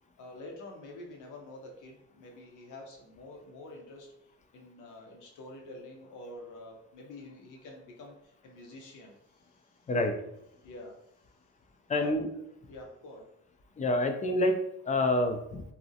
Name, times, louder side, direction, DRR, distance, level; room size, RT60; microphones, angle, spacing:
voice 1, 0.2-9.8 10.6-11.0 11.9-12.1 12.7-13.3, left 2 dB, 85° left, 0 dB, 0.7 m, -48 dB
voice 2, 11.9-12.3 13.8-15.6, left 1 dB, 25° left, 6 dB, 0.3 m, -27 dB
2.5 x 2.0 x 2.7 m, 0.79 s
cardioid pair, 90°, 30 cm